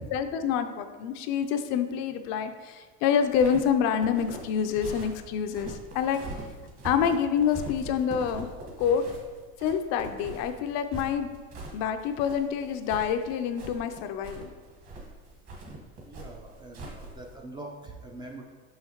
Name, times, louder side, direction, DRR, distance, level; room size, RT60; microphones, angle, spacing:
voice 1, 0.1-6.2 6.8-8.5 8.8-9.1 9.6-11.3 11.7-14.5, left 7 dB, 50° left, 8 dB, 0.5 m, -27 dB
sound 1, 3.3-17.4, right 2 dB, 45° right, 1.6 m, -42 dB
voice 2, 16.1-18.4, right 2 dB, 15° right, 1 dB, 0.4 m, -43 dB
6.2 x 5.7 x 3.0 m, 1.5 s
supercardioid pair, 145°, 33 cm